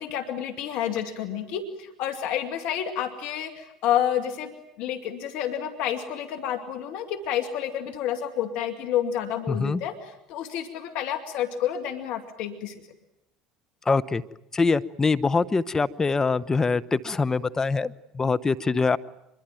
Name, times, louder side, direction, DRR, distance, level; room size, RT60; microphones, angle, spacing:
voice 1, 0.0-4.5 4.8-12.8, left 10 dB, 65° left, 6 dB, 2.2 m, -29 dB
voice 2, 9.5-9.8 13.9-14.2 14.5-19.0, left 4 dB, 25° left, 12 dB, 1.0 m, -24 dB
24.5 x 22.5 x 9.1 m, 0.85 s
hypercardioid pair, 70°, 2 cm